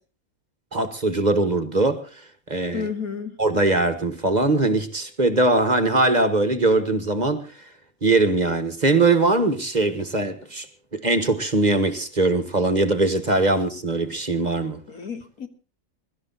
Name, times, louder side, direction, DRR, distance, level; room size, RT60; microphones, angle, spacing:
voice 1, 0.7-2.0 2.5-2.9 3.4-7.5 8.0-10.7 10.9-14.8, right 2 dB, 30° right, 1.5 m, -21 dB
voice 2, 2.7-3.4 14.9-15.5, left 6 dB, 80° left, 2.2 m, -31 dB
22.5 x 12.5 x 4.0 m
omnidirectional pair, 1.5 m